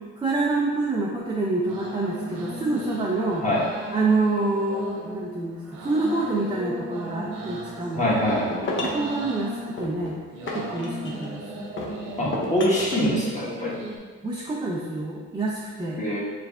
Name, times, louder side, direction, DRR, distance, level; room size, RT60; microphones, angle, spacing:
voice 1, 0.2-3.4 3.9-8.1 8.8-10.2 10.5-11.4 12.2-12.4 14.2-16.0, right 2 dB, 15° right, -4 dB, 0.4 m, -27 dB
sound 1, 1.2-14.0, right 2 dB, 65° right, 0.7 m, -37 dB
voice 2, 7.9-8.5 12.2-13.7 16.0-16.2, left 1 dB, 25° left, -6 dB, 1.2 m, -24 dB
sound 2, 8.1-9.1 9.8-11.3 11.8-13.1, left 2 dB, 40° left, 0.7 m, -32 dB
4.9 x 3.2 x 2.3 m, 1.5 s
cardioid pair, 90°, 30 cm